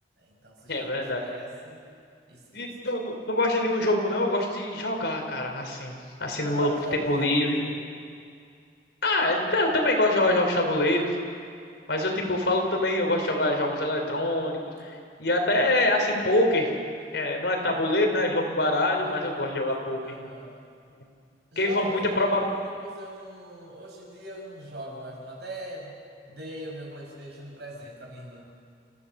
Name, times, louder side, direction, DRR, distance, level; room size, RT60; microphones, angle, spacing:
voice 1, 0.2-1.9 2.3-2.7 6.3-7.7 17.6-17.9 18.8-19.6 20.0-20.6 21.5-26.0 26.3-28.4, right 1 dB, 70° right, -2 dB, 6.5 m, -41 dB
voice 2, 0.7-1.2 2.5-6.7 7.1-7.6 9.0-11.1 11.9-14.9 15.2-16.7 17.1-20.0 21.6-22.4, left 1 dB, 75° left, 2 dB, 3.9 m, -25 dB
28.5 x 16.0 x 6.8 m, 2.3 s
head